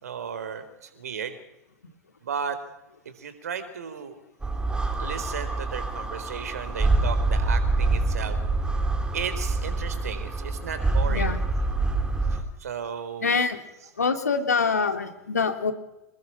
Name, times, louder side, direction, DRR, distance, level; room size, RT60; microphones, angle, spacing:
voice 1, 0.0-1.4 2.2-2.6 3.2-4.2 5.0-8.4 9.1-11.3 12.3-13.4 13.8-13.9, right 7 dB, 75° right, 10 dB, 3.9 m, -34 dB
sound 1, 4.4-12.4, right 2 dB, 10° right, 4.1 m, -26 dB
voice 2, 13.2-13.6 14.0-15.7, left 5 dB, 85° left, 7 dB, 3.1 m, -25 dB
28.0 x 20.0 x 5.9 m, 0.90 s
figure-of-eight pair, 90°, 8 cm